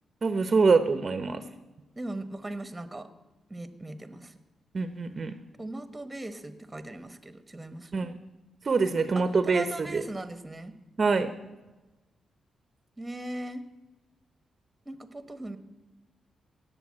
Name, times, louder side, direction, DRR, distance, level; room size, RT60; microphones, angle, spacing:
voice 1, 0.2-1.4 4.7-5.3 7.9-8.1 8.6-10.0 11.0-11.3, right 4 dB, 40° right, 11 dB, 0.9 m, -25 dB
voice 2, 2.0-3.1 3.5-4.3 5.6-8.1 9.1-10.7 13.0-13.6 14.8-15.6, right 1 dB, 15° right, 11 dB, 1.2 m, -39 dB
18.0 x 7.0 x 8.8 m, 1.1 s
cardioid pair, 105°, 0 cm